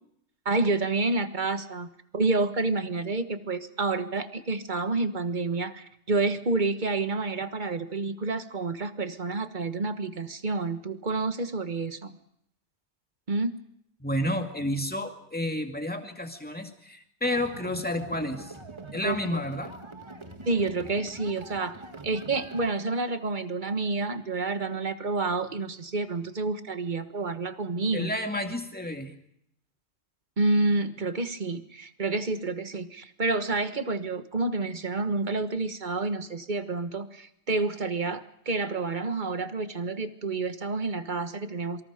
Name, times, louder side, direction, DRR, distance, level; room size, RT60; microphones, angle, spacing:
voice 1, 0.4-1.9 2.1-12.1 13.3-13.6 19.0-19.4 20.4-21.8 22.0-28.1 30.4-41.8, right 3 dB, 45° right, 10 dB, 1.5 m, -29 dB
voice 2, 14.0-18.5 18.9-19.7 27.9-29.1, left 1 dB, 10° left, 4 dB, 2.3 m, -30 dB
sound 1, 17.2-22.7, right 3 dB, 25° right, 1.6 m, -43 dB
26.5 x 24.5 x 5.1 m, 0.74 s
omnidirectional pair, 1.2 m